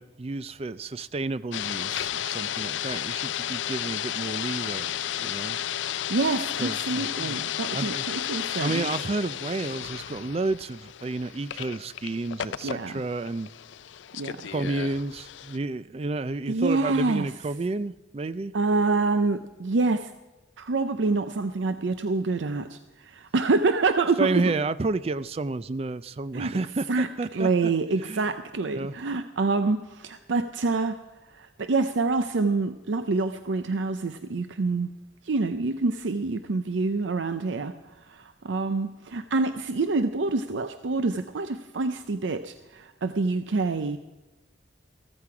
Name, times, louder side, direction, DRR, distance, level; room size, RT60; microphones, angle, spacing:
voice 1, 0.0-4.9 5.2-5.6 6.6-7.4 7.7-8.0 8.6-13.5 14.5-18.5 24.2-27.7 28.1-28.2 28.7-29.0, right 3 dB, 35° right, 16 dB, 0.4 m, -31 dB
sound 1, 1.5-15.6, left 11 dB, 85° left, 0.4 m, -33 dB
voice 2, 6.1-8.9 12.6-13.0 14.1-14.5 16.5-17.3 18.5-20.1 20.6-24.5 26.3-26.5 26.9-31.0 31.3-34.9 35.2-44.0, right 3 dB, 90° right, 9 dB, 0.6 m, -26 dB
14.5 x 14.0 x 4.9 m, 1.1 s
head